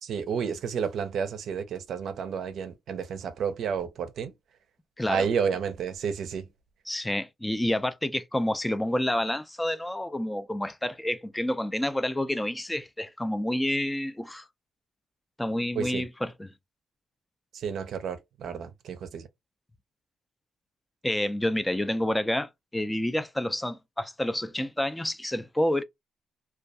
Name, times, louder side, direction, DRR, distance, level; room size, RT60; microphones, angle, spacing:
voice 1, 0.0-4.3 5.1-6.5 15.8-16.0 17.5-19.3, right 6 dB, 65° right, 0.5 m, -31 dB
voice 2, 6.9-14.5 15.4-16.5 21.0-25.8, left 1 dB, 10° left, 0.3 m, -29 dB
2.2 x 2.2 x 2.6 m
cardioid pair, 90°, 0 cm